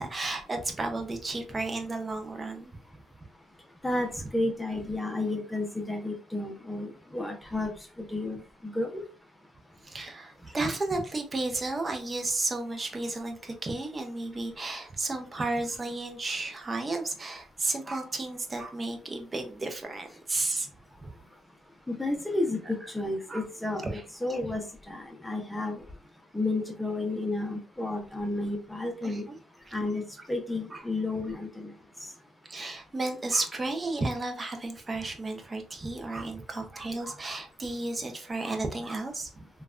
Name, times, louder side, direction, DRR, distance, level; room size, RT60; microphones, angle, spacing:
voice 1, 0.0-2.8 9.8-20.7 21.0-21.1 23.3-23.4 23.8-24.0 29.0-29.4 29.7-29.8 30.7-30.8 32.5-39.3, right 2 dB, 30° right, 0.7 m, -33 dB
voice 2, 3.8-7.7 8.0-9.0 21.9-25.8 26.3-29.3 29.7-30.0 30.3-31.7, left 2 dB, 5° left, 0.7 m, -32 dB
3.2 x 2.3 x 2.4 m
cardioid pair, 90°, 0 cm